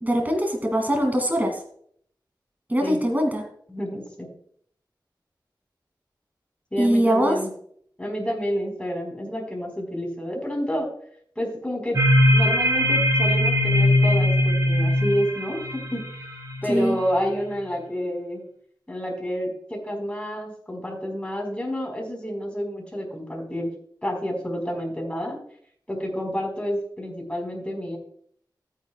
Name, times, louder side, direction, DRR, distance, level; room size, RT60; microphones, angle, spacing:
voice 1, 0.0-1.6 2.7-3.4 6.8-7.4 16.7-17.0, equal, 20° right, 3 dB, 2.4 m, -22 dB
voice 2, 3.7-4.3 6.7-7.5 8.0-10.9 11.4-12.0 12.3-16.0 16.6-18.4 18.9-23.7 24.0-25.4 25.9-28.0, equal, 15° left, 0 dB, 4.1 m, -29 dB
sound 1, 11.9-16.8, left 1 dB, 40° right, 3.6 m, -20 dB
15.0 x 9.2 x 2.3 m, 0.63 s
wide cardioid pair, 75°, 8 cm